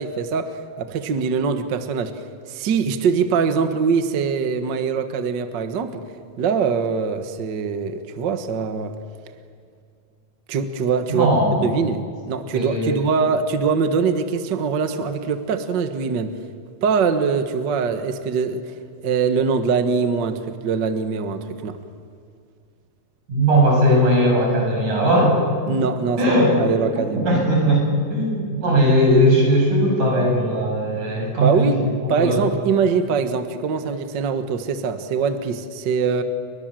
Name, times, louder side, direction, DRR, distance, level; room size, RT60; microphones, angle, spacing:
voice 1, 0.0-2.2 2.5-6.0 6.4-8.9 10.5-11.3 11.6-16.4 16.8-18.6 19.0-21.8 25.7-26.2 26.6-27.3 31.4-31.8 32.1-36.2, right 5 dB, 75° right, 8 dB, 1.0 m, -23 dB
voice 2, 11.1-11.8 12.5-13.0 23.3-25.4 25.7-25.8 26.2-26.6 27.0-31.7 32.0-32.4, equal, 55° right, -1 dB, 8.9 m, -18 dB
29.5 x 23.5 x 7.7 m, 2.2 s
omnidirectional pair, 4.3 m